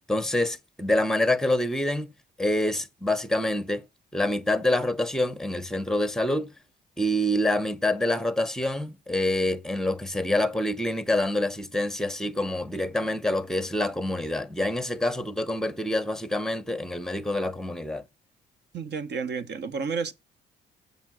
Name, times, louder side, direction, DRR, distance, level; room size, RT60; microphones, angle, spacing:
voice 1, 0.1-2.1 2.4-3.8 4.1-6.5 7.0-18.0, left 1 dB, ahead, 0.8 m, -26 dB
voice 2, 18.7-20.1, right 5 dB, 60° right, 1.2 m, -31 dB
7.3 x 5.5 x 6.1 m
cardioid pair, 90°, 20 cm